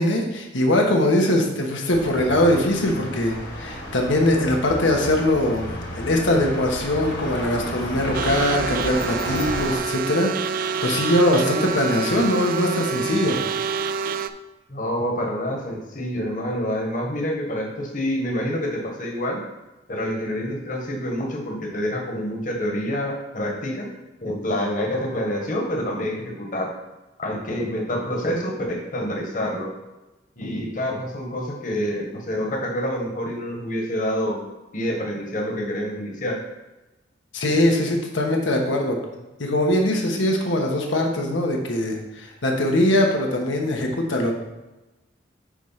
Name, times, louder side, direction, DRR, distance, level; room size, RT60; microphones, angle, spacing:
voice 1, 0.0-5.7 5.9-10.3 10.6-13.4 37.3-39.0 39.4-44.3, left 1 dB, 90° left, 1 dB, 1.1 m, -21 dB
sound 1, 1.9-9.8, left 1 dB, 65° left, 1.8 m, -32 dB
sound 2, 8.1-14.3, right 6 dB, 50° right, 0.3 m, -27 dB
voice 2, 14.7-19.4 19.9-23.9 24.2-26.7 27.2-29.7 30.4-34.4 34.7-36.4, equal, 45° left, 0 dB, 1.2 m, -27 dB
8.5 x 3.2 x 5.6 m, 1.0 s
head